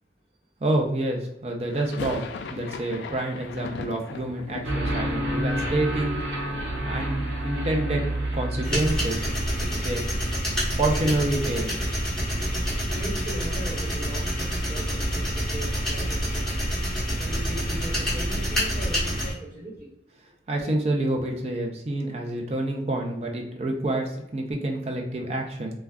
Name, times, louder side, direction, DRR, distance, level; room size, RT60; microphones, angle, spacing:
voice 1, 0.6-6.2 6.8-8.0 8.3-9.3 9.6-10.0 10.8-11.7 20.5-25.7, right 1 dB, 35° right, 1 dB, 0.5 m, -28 dB
sound 1, 1.7-7.7 7.9-8.8 9.0-9.1 9.4-11.5, left 4 dB, 80° left, 0.3 m, -40 dB
sound 2, 4.6-10.0, right 1 dB, 80° right, 0.7 m, -29 dB
sound 3, 8.6-19.3, equal, 5° left, 1.0 m, -27 dB
voice 2, 12.8-16.5 17.2-19.9, right 1 dB, 20° right, -9 dB, 1.2 m, -39 dB
2.4 x 2.2 x 3.4 m, 0.84 s
head